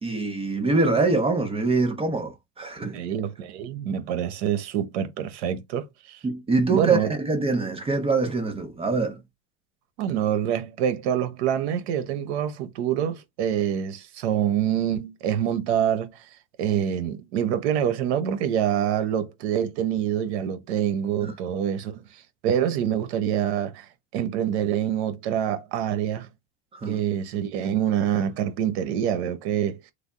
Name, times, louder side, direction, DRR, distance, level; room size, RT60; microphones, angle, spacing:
voice 1, 0.0-3.0 6.2-9.2 21.2-21.3 26.7-27.0, right 3 dB, 20° right, 0.6 m, -24 dB
voice 2, 2.6-6.2 6.7-7.1 10.0-16.2 16.6-26.3 26.9-29.8, right 9 dB, 85° right, 0.9 m, -26 dB
3.4 x 2.1 x 3.6 m
supercardioid pair, 130°, 33 cm